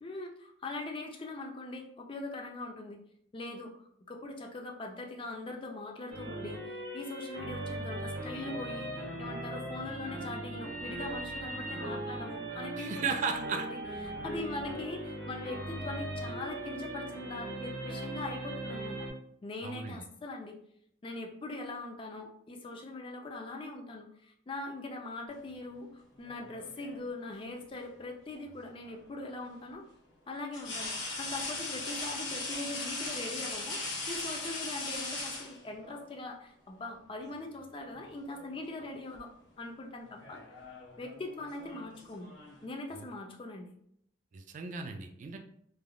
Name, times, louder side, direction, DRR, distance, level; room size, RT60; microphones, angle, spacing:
voice 1, 0.0-3.0 3.3-8.9 9.2-13.8 14.0-19.1 19.4-20.6 21.0-29.8 30.3-39.3 39.6-40.4 41.0-42.3 42.6-43.7, left 2 dB, 30° left, 2 dB, 0.4 m, -41 dB
sound 1, 6.1-19.1, right 1 dB, 75° right, 1.1 m, -39 dB
voice 2, 12.8-13.7 19.6-20.0 42.9-43.1 44.3-45.4, right 5 dB, 45° right, 5 dB, 0.3 m, -35 dB
sound 2, 26.2-27.1 28.8-29.0 30.5-36.0 37.2-37.4 37.8-38.5 38.8-39.2 40.0-42.7, left 2 dB, 80° left, 1.2 m, -39 dB
3.3 x 2.3 x 2.3 m, 0.68 s
head